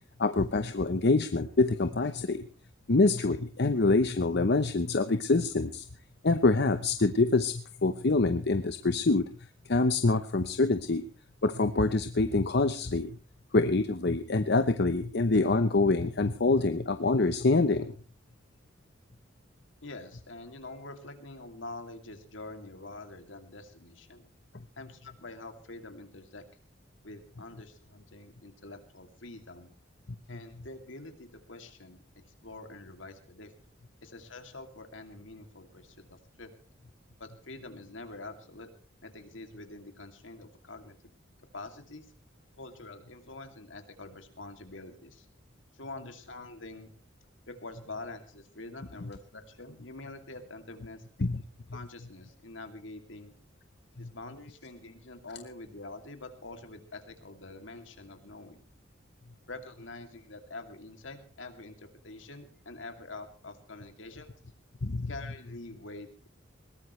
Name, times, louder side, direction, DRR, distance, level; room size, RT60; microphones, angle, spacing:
voice 1, 0.2-2.4 2.9-5.8 6.2-9.2 9.7-11.0 11.4-13.1 13.5-17.9 51.2-51.4 54.0-54.1 64.8-65.1, left 3 dB, 60° left, 10 dB, 0.8 m, -25 dB
voice 2, 19.8-24.2 24.8-26.4 27.0-29.7 30.3-32.0 32.4-33.5 34.0-36.5 37.2-38.7 39.0-40.9 41.5-42.1 42.6-45.3 45.7-46.9 47.5-51.0 51.7-53.3 54.0-58.6 59.5-64.3 65.1-66.3, left 2 dB, 75° left, 6 dB, 2.7 m, -45 dB
21.0 x 18.0 x 3.2 m, 0.38 s
head